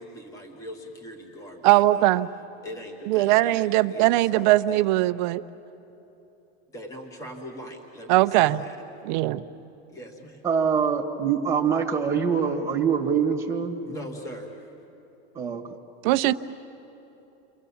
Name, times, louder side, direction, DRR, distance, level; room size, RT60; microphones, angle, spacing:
voice 1, 0.0-2.1 2.6-4.9 6.7-8.8 9.9-10.4 13.8-14.6, equal, 10° left, 3 dB, 1.4 m, -41 dB
voice 2, 1.6-2.3 3.1-5.4 8.1-8.6 9.0-9.4 16.0-16.3, right 16 dB, 45° right, 11 dB, 0.6 m, -20 dB
voice 3, 10.4-13.8 15.3-15.6, right 6 dB, 10° right, 2 dB, 1.7 m, -24 dB
29.5 x 24.5 x 7.1 m, 3.0 s
supercardioid pair, 175°, 34 cm